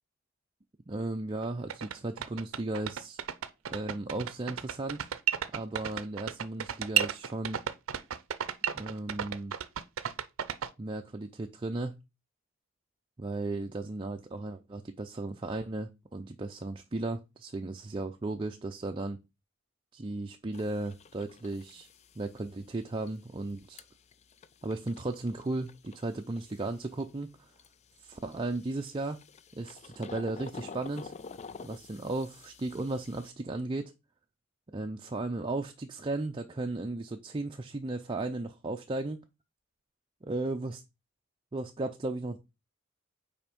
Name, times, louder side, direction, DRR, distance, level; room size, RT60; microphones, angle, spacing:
voice 1, 0.9-3.2 3.7-5.1 5.5-7.6 8.7-9.5 10.8-12.0 13.2-19.2 19.9-21.9 22.2-23.8 24.6-27.5 28.0-29.2 29.5-31.1 31.6-33.9 34.7-39.2 40.2-40.8 41.5-42.4, right 2 dB, 25° right, 0.5 m, -35 dB
sound 1, 1.4-1.5 1.7-10.7, right 9 dB, 75° right, 0.5 m, -32 dB
sound 2, 20.5-33.3, left 4 dB, 35° left, 0.4 m, -50 dB
5.7 x 4.3 x 5.2 m
head